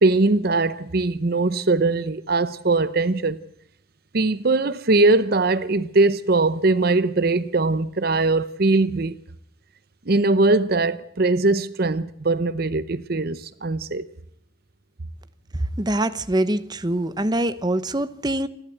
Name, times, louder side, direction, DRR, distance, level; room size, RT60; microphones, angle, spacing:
voice 1, 0.0-3.4 4.1-9.1 10.1-14.1, right 3 dB, 55° right, 0.8 m, -21 dB
voice 2, 15.5-18.5, right 1 dB, 20° right, 0.9 m, -24 dB
28.5 x 12.0 x 7.8 m
head